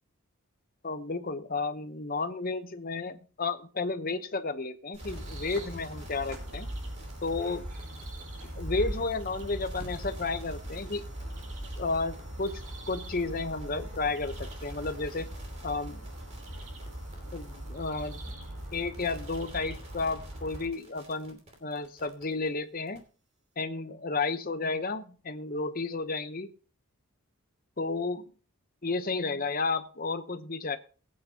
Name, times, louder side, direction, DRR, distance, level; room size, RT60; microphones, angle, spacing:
voice 1, 0.8-6.7 7.2-7.6 8.6-11.0 11.8-12.5 12.9-15.3 15.6-16.0 17.3-18.2 18.7-23.0 23.6-26.5 27.8-28.2 28.8-30.8, left 3 dB, 40° left, 10 dB, 0.9 m, -32 dB
sound 1, 4.9-22.5 22.9-23.0, right 2 dB, 30° right, 2.7 m, -55 dB
sound 2, 5.0-20.6, right 1 dB, 75° right, 6.9 m, -40 dB
20.5 x 8.8 x 2.9 m, 0.38 s
head